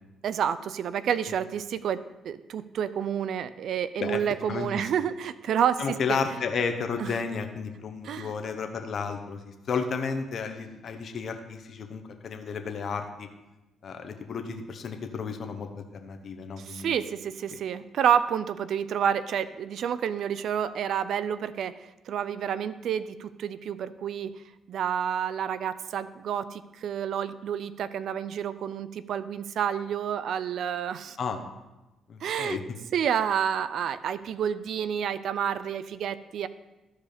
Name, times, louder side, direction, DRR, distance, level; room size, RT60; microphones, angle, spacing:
voice 1, 0.2-5.8 6.1-6.2 7.0-7.1 8.0-8.3 16.6-24.3 24.7-31.2 32.2-32.6 32.9-36.5, right 8 dB, 70° right, 15 dB, 0.5 m, -29 dB
voice 2, 4.5-4.9 5.8-13.3 13.8-15.7 15.9-17.0 31.2-31.5 32.1-32.6, left 5 dB, 55° left, 6 dB, 1.0 m, -32 dB
13.0 x 4.9 x 5.1 m, 1.0 s
cardioid pair, 90°, 0 cm